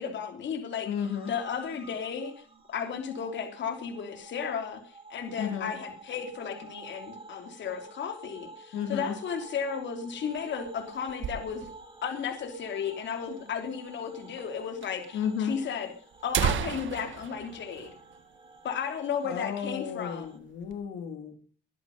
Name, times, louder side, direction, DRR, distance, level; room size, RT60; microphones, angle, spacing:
voice 1, 0.0-0.9 1.3-11.7 12.0-15.9 16.2-17.9 18.6-20.4, left 7 dB, 65° left, 6 dB, 3.1 m, -34 dB
voice 2, 0.9-1.3 5.4-5.7 8.7-9.2 15.1-15.6 19.2-21.4, left 7 dB, 85° left, 5 dB, 3.5 m, -33 dB
sound 1, 0.9-20.4, right 4 dB, 25° right, 5.3 m, -50 dB
sound 2, 10.1-12.0 12.3-12.4 12.6-12.7 13.4-13.5 14.4-14.5 14.8-14.9 15.7-15.8 16.1-18.7 19.0-19.2 19.6-19.8 20.2-20.8, right 9 dB, 75° right, 1.8 m, -34 dB
22.0 x 11.5 x 5.3 m, 0.44 s
cardioid pair, 90°, 20 cm